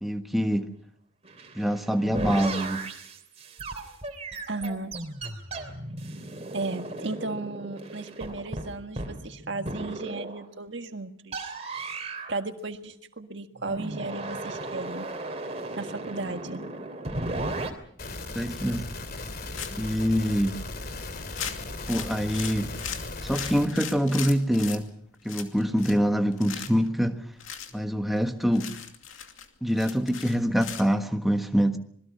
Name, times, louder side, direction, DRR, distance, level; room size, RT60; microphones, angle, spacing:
voice 1, 0.0-0.7 1.5-2.9 18.3-18.9 19.7-20.6 21.9-22.8 23.2-24.9 25.2-27.2 27.7-28.7 29.6-31.8, equal, ahead, 1.5 m, -25 dB
sound 1, 1.2-10.4 11.3-12.4 13.6-17.7, right 2 dB, 35° right, 3.1 m, -36 dB
voice 2, 4.5-4.9 6.5-11.5 12.3-15.1 15.8-16.6, right 3 dB, 60° right, 1.8 m, -35 dB
sound 2, 18.0-23.7, left 2 dB, 50° left, 2.8 m, -37 dB
sound 3, 19.5-20.0 20.4-20.5 20.8-20.9 21.3-24.8 25.2-26.1 26.3-26.9 27.4-27.7 28.2-28.3 28.5-30.9, left 8 dB, 85° left, 2.6 m, -38 dB
26.5 x 21.0 x 5.7 m
head